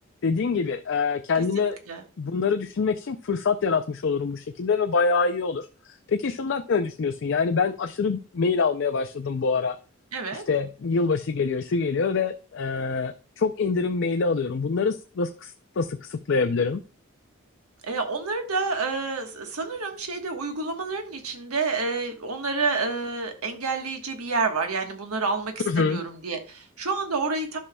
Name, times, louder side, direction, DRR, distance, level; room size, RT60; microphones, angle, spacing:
voice 1, 0.2-1.8 2.2-9.8 10.3-16.8 25.7-26.0, left 4 dB, 55° left, 7 dB, 0.4 m, -25 dB
voice 2, 1.6-2.0 10.1-10.4 17.8-27.6, right 4 dB, 85° right, 5 dB, 1.3 m, -29 dB
13.0 x 5.5 x 2.3 m, 0.35 s
head